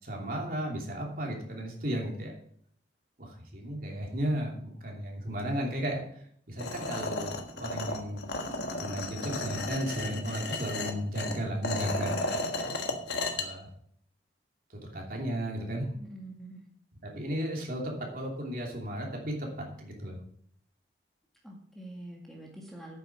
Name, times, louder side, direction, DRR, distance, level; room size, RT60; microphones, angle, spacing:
voice 1, 0.0-2.3 3.2-8.2 8.8-12.4 13.3-13.7 14.7-15.9 17.0-20.2, equal, 50° right, -1 dB, 2.9 m, -34 dB
sound 1, 6.6-13.4, left 2 dB, 65° left, 1.5 m, -34 dB
voice 2, 16.0-16.6 21.4-23.0, right 1 dB, ahead, -2 dB, 1.9 m, -45 dB
9.2 x 7.9 x 6.2 m, 0.63 s
head